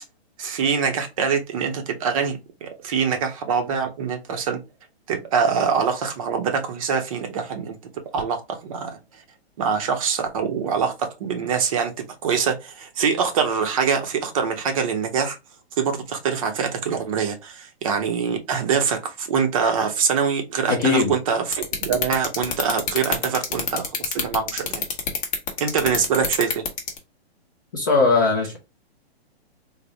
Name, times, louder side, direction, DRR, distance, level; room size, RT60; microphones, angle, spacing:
voice 1, 0.4-4.6 5.1-7.8 8.1-9.0 9.6-15.4 15.8-24.8 25.6-26.7, right 6 dB, 35° right, 0.6 m, -24 dB
voice 2, 20.7-21.1 27.7-28.6, left 4 dB, 20° left, 0.4 m, -19 dB
sound 1, 21.5-27.0, left 6 dB, 35° left, 0.9 m, -24 dB
3.4 x 2.0 x 3.8 m
hypercardioid pair, 160°, 32 cm